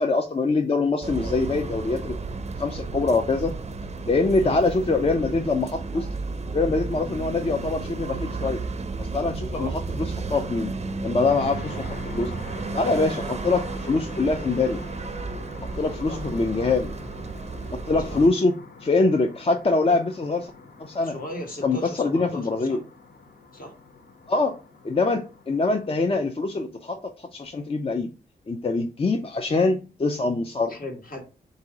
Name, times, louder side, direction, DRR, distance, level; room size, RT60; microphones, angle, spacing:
voice 1, 0.0-2.2 2.6-3.5 4.0-6.1 6.5-8.6 9.0-9.7 10.0-10.7 11.0-12.3 12.7-14.8 15.8-16.9 17.9-20.5 20.8-21.1 21.6-22.8 24.3-24.6 24.8-28.1 28.5-30.8, left 3 dB, 35° left, 4 dB, 0.5 m, -24 dB
sound 1, 1.0-18.3, right 3 dB, 40° right, 0.5 m, -33 dB
sound 2, 11.3-26.0, left 4 dB, 75° left, 0.9 m, -45 dB
voice 2, 21.0-22.8 23.5-23.7 30.7-31.2, left 1 dB, 60° left, 2 dB, 1.4 m, -37 dB
3.8 x 2.7 x 4.8 m, 0.31 s
wide cardioid pair, 105°, 17 cm